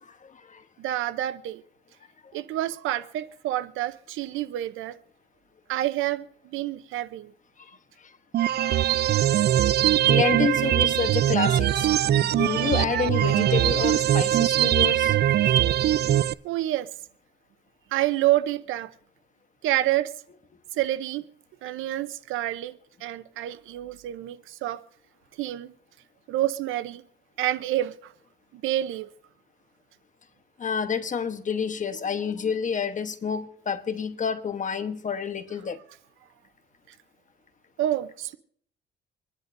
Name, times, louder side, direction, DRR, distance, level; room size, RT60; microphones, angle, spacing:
voice 1, 0.1-0.6 8.4-8.9 10.1-11.9 12.2-15.2 16.0-16.1 30.6-35.8, left 6 dB, 40° left, 1.1 m, -29 dB
voice 2, 0.8-1.6 2.3-5.0 5.7-7.3 16.4-16.9 17.9-18.9 19.6-20.1 20.7-21.2 21.6-24.8 25.4-25.7 26.3-27.0 27.4-28.1 28.5-29.1 37.8-38.3, right 14 dB, 90° right, 0.7 m, -28 dB
sound 1, 8.3-16.3, right 12 dB, 55° right, 0.4 m, -21 dB
25.5 x 10.5 x 2.6 m
cardioid pair, 90°, 20 cm